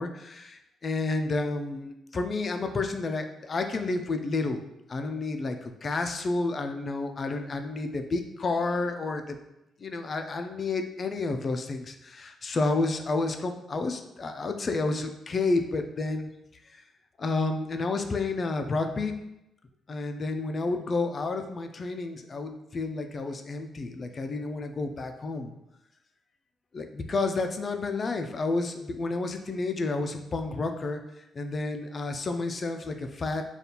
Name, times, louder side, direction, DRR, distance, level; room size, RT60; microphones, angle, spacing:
voice 1, 0.0-4.6 4.9-9.4 9.8-16.3 17.2-19.2 19.9-25.5 26.7-31.0 31.3-33.4, left 3 dB, 35° left, 6 dB, 0.3 m, -30 dB
5.1 x 2.3 x 2.8 m, 0.88 s
cardioid pair, 145°, 0 cm